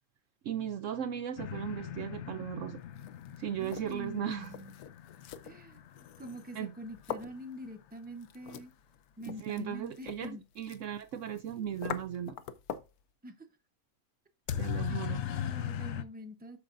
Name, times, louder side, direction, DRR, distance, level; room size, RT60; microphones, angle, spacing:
voice 1, 0.4-2.8 3.4-4.5 6.5-6.7 9.3-12.4 14.6-15.3, right 9 dB, 65° right, 0.9 m, -37 dB
sound 1, 1.4-7.1 14.5-16.0, left 10 dB, 65° left, 0.8 m, -39 dB
sound 2, 2.8-13.0, left 9 dB, 90° left, 1.2 m, -46 dB
voice 2, 3.6-4.7 5.4-8.7 9.2-10.4 13.2-13.5 14.7-16.6, equal, 10° right, 0.8 m, -45 dB
12.5 x 5.2 x 2.6 m
omnidirectional pair, 1.6 m